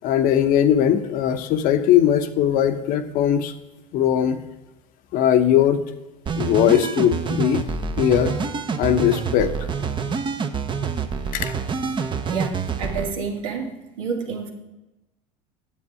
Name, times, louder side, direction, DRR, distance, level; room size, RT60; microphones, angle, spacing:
voice 1, 0.0-3.5 3.9-4.4 5.1-5.8 6.4-7.6 8.0-8.3 8.8-9.5 11.3-11.5, left 10 dB, 60° left, 9 dB, 0.9 m, -19 dB
sound 1, 6.3-13.1, right 5 dB, 30° right, 0.8 m, -27 dB
voice 2, 12.3-13.7 14.0-14.5, right 5 dB, 85° right, 2 dB, 1.7 m, -29 dB
9.1 x 7.3 x 4.8 m, 1.0 s
supercardioid pair, 90°, 16 cm